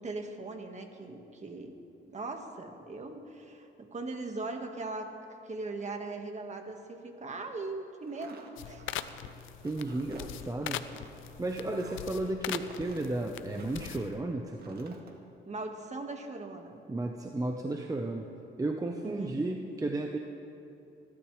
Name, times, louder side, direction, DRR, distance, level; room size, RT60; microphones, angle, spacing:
voice 1, 0.0-1.8 2.0-5.1 5.4-8.8 15.5-16.8 19.0-19.4, right 3 dB, 35° right, 4 dB, 1.7 m, -39 dB
sound 1, 8.0-14.1 14.5-15.1, right 4 dB, 50° right, 1.8 m, -53 dB
sound 2, 8.6-14.2, left 12 dB, 85° left, 0.6 m, -41 dB
voice 2, 9.6-10.9 11.4-15.0 16.9-18.3 18.6-20.2, right 2 dB, 15° right, 3 dB, 0.9 m, -33 dB
27.0 x 12.0 x 3.3 m, 2.8 s
cardioid pair, 90°, 20 cm